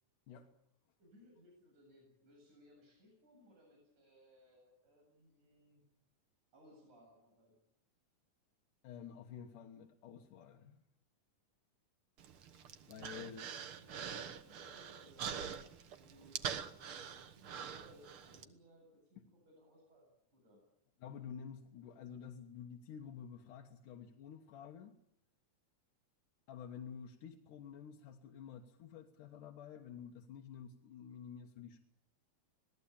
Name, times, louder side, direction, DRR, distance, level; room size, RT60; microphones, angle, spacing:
voice 1, 1.0-5.8 6.5-7.6 13.1-15.3 15.9-20.6, equal, 70° right, -1 dB, 9.2 m, -64 dB
voice 2, 8.8-10.8 12.9-13.4 21.0-24.9 26.5-31.8, left 8 dB, 80° left, 2 dB, 2.9 m, -50 dB
Human voice, 12.2-18.4, right 7 dB, 55° right, 1.8 m, -45 dB
26.0 x 18.0 x 8.7 m, 0.76 s
omnidirectional pair, 3.6 m